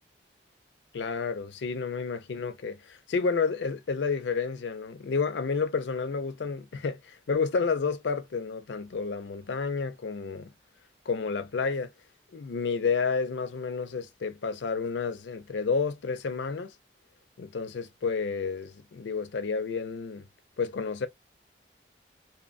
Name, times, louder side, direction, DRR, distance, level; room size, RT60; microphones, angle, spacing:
voice 1, 0.9-10.5 11.1-11.9 12.3-16.7 17.4-20.3 20.6-21.1, left 5 dB, 80° left, 0.5 m, -30 dB
2.8 x 2.1 x 2.5 m
head